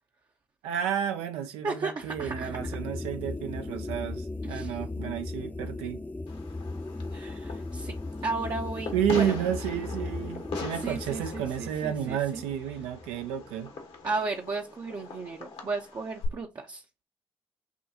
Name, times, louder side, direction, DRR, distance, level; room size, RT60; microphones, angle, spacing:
voice 1, 0.6-6.0 8.9-13.7, right 9 dB, 75° right, 0.6 m, -31 dB
voice 2, 1.6-2.7 4.4-4.8 7.1-7.9 8.2-9.4 10.8-12.4 14.0-16.8, right 3 dB, 40° right, 0.8 m, -34 dB
sound 1, 2.0-13.4, left 2 dB, 15° left, 0.7 m, -37 dB
Fireworks, 6.3-16.3, left 4 dB, 65° left, 1.2 m, -41 dB
6.2 x 2.3 x 2.7 m
hypercardioid pair, 40°, 10 cm